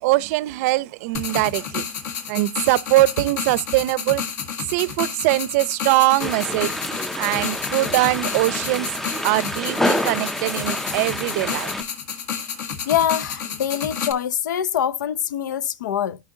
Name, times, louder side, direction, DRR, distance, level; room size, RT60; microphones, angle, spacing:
voice 1, 0.0-1.9 2.3-4.2 4.7-6.7 7.1-8.9 9.2-11.7, right 19 dB, 55° right, 0.5 m, -22 dB
sound 1, 1.1-14.1, left 7 dB, 65° left, 1.8 m, -30 dB
sound 2, 6.2-11.8, left 1 dB, 5° left, 0.4 m, -28 dB
voice 2, 12.9-16.2, left 9 dB, 85° left, 0.6 m, -24 dB
13.5 x 5.5 x 2.6 m
supercardioid pair, 135°, 10 cm